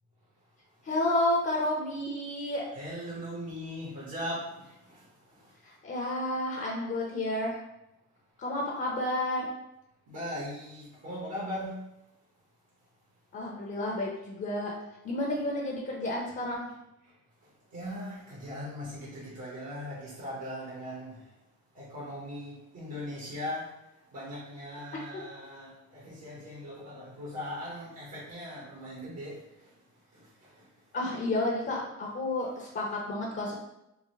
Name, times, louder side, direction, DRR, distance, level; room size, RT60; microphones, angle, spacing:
voice 1, 0.8-2.6 5.6-7.6 8.4-9.5 13.3-14.7 15.0-16.7 25.1-25.2 30.9-33.5, left 1 dB, 40° left, -3 dB, 0.8 m, -31 dB
voice 2, 2.7-5.5 10.1-11.8 17.0-17.1 17.4-21.3 21.7-29.7 30.1-30.7, equal, 60° right, -6 dB, 1.3 m, -40 dB
3.8 x 2.1 x 3.1 m, 0.89 s
cardioid pair, 90°, 30 cm